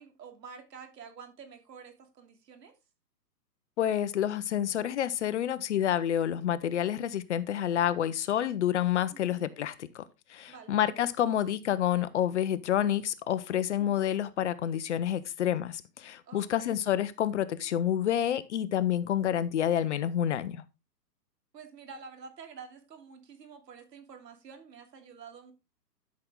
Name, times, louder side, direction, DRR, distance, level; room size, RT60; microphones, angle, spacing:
voice 1, 0.0-2.7 9.1-9.5 10.5-10.8 13.8-14.0 16.2-16.6 21.5-25.5, right 6 dB, 75° right, 2.9 m, -49 dB
voice 2, 3.8-20.6, left 10 dB, 45° left, 0.7 m, -29 dB
11.5 x 6.1 x 3.7 m
hypercardioid pair, 145°, 50 cm